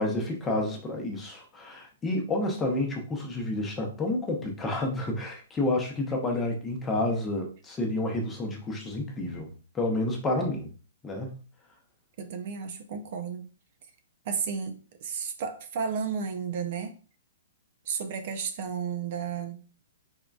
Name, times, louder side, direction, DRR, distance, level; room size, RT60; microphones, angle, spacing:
voice 1, 0.0-10.7 11.0-11.3, left 2 dB, 10° left, 1 dB, 0.8 m, -30 dB
voice 2, 12.2-13.5 14.3-16.9 17.9-19.6, right 6 dB, 45° right, 6 dB, 0.5 m, -33 dB
3.7 x 3.6 x 2.3 m, 0.37 s
hypercardioid pair, 160°, 0 cm